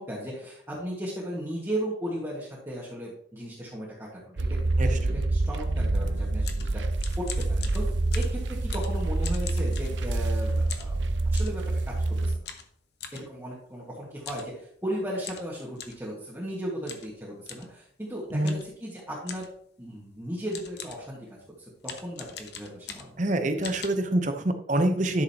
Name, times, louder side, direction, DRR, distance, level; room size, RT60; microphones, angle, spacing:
voice 1, 0.0-6.8 7.2-7.8 8.1-10.9 11.3-11.9 12.2-12.3 13.1-19.5 19.8-21.3 21.8-23.2, equal, 15° right, -7 dB, 1.7 m, -36 dB
sound 1, 4.4-12.4, right 2 dB, 75° right, 0.6 m, -27 dB
voice 2, 4.8-5.2 18.3-18.6 23.2-25.2, right 1 dB, 40° right, 7 dB, 0.8 m, -26 dB
sound 2, 6.2-10.3 10.7-11.6 12.5-13.3 14.2-14.5 14.8-14.9 15.2-16.1 16.9-17.1 17.5-17.7 18.4-18.8 19.3-19.6 20.2-20.3 20.5-21.1 21.8-23.3 23.6-23.9, left 7 dB, 60° left, 1.0 m, -41 dB
12.0 x 6.6 x 2.9 m, 0.66 s
head